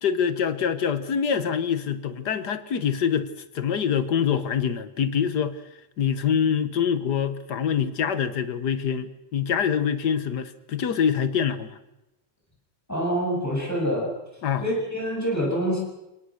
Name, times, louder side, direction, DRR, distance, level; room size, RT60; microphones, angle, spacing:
voice 1, 0.0-3.3 3.6-5.6 6.0-11.8 14.4-14.6, left 7 dB, 70° left, 12 dB, 1.7 m, -25 dB
voice 2, 12.9-14.1 14.6-15.8, equal, 10° left, -2 dB, 7.8 m, -26 dB
27.5 x 19.0 x 6.5 m, 0.93 s
omnidirectional pair, 1.9 m